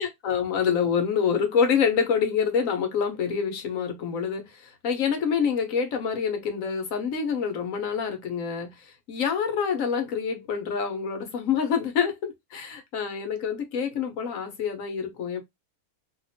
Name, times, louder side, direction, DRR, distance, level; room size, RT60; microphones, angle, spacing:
voice 1, 0.0-15.4, left 6 dB, 65° left, 1.2 m, -27 dB
2.8 x 2.5 x 2.6 m
omnidirectional pair, 1.6 m